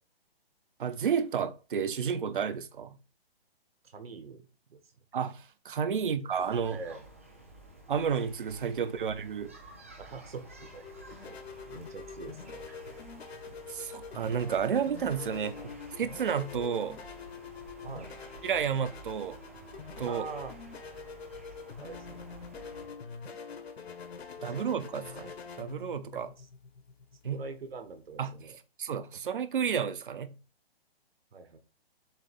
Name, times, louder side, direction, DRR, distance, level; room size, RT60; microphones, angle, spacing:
voice 1, 0.8-3.0 5.1-6.8 7.9-9.5 13.7-15.6 16.0-17.0 18.4-19.4 20.0-20.2 24.4-26.3 27.2-27.4 28.2-28.4 28.8-30.4, right 7 dB, 55° right, 0.8 m, -31 dB
voice 2, 3.8-4.8 6.0-6.2 6.7-7.1 10.0-10.8 11.2-11.4 11.7-12.8 15.5-15.8 17.8-18.2 20.0-20.5 21.8-22.3 24.4-24.6 26.1-26.5 27.3-28.6 31.3-31.6, right 4 dB, 70° right, 1.7 m, -44 dB
sound 1, 6.3-22.9, right 2 dB, 15° right, 0.5 m, -51 dB
sound 2, 10.1-28.4, left 5 dB, 85° left, 1.6 m, -45 dB
7.4 x 2.9 x 5.3 m
hypercardioid pair, 180°, 31 cm